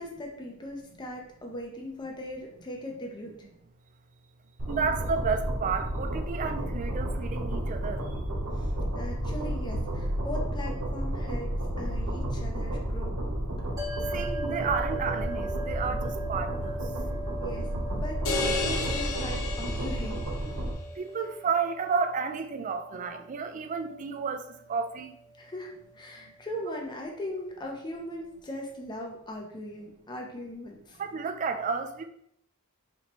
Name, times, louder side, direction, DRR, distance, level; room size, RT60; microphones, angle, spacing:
voice 1, 0.0-3.5 8.5-13.2 17.4-20.2 25.3-31.0, left 1 dB, 20° left, 0 dB, 0.5 m, -39 dB
sound 1, 4.6-20.7, right 1 dB, 70° right, 1.0 m, -32 dB
voice 2, 4.7-8.0 14.1-16.8 21.0-25.1 31.0-32.0, right 5 dB, 35° right, 7 dB, 0.3 m, -31 dB
sound 2, 13.8-26.3, right 2 dB, 15° right, 0.9 m, -41 dB
sound 3, 18.3-20.6, left 3 dB, 70° left, 0.6 m, -32 dB
4.4 x 2.7 x 3.0 m, 0.72 s
head